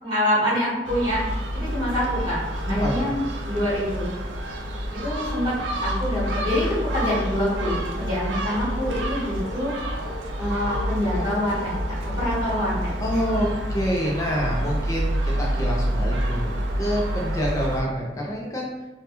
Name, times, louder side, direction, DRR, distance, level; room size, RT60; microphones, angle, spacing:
voice 1, 0.0-1.2 1.5-2.4 2.7-4.1 5.0-9.7 10.4-12.9, equal, 25° right, -9 dB, 1.0 m, -26 dB
Gull seagull, 0.8-17.8, equal, 75° right, 0.4 m, -28 dB
voice 2, 2.7-3.1 13.0-18.9, equal, 15° left, -3 dB, 0.3 m, -27 dB
Bark, 6.6-6.8 7.4-8.0 8.7-8.9 9.4-9.5 10.0-10.2 10.7-10.8 11.1-11.8 12.1-12.3, left 2 dB, 75° left, 0.7 m, -38 dB
2.2 x 2.1 x 2.9 m, 1.1 s
head